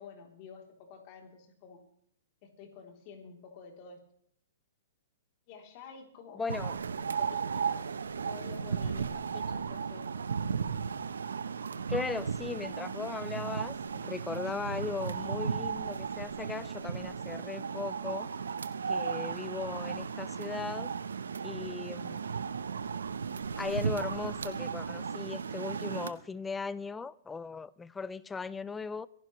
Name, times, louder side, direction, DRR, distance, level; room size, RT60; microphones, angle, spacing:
voice 1, 0.0-1.8 2.4-4.0 5.5-6.7 7.2-7.9 8.2-10.2, left 6 dB, 45° left, 3.4 m, -50 dB
voice 2, 6.3-6.8 11.9-18.3 18.9-20.9 21.4-22.2 23.6-29.1, left 4 dB, 10° left, 0.5 m, -38 dB
sound 1, 6.5-26.1, right 6 dB, 85° right, 0.9 m, -35 dB
25.0 x 11.5 x 3.2 m
hypercardioid pair, 130°, 0 cm